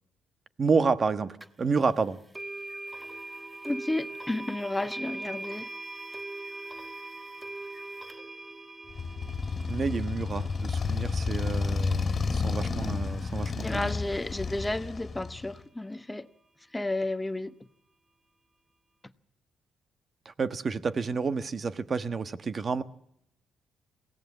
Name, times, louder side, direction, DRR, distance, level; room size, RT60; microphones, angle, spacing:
voice 1, 0.6-2.2 9.7-13.9 20.2-22.8, right 4 dB, 40° right, 1.3 m, -29 dB
sound 1, 1.4-1.5 2.3-13.3, right 2 dB, 15° right, 1.1 m, -42 dB
voice 2, 3.7-5.7 13.6-16.3 16.7-17.5, left 2 dB, 10° left, 1.0 m, -32 dB
Motorcycle, 8.9-15.6, left 4 dB, 40° left, 2.2 m, -31 dB
23.0 x 17.5 x 7.3 m
cardioid pair, 90°, 0 cm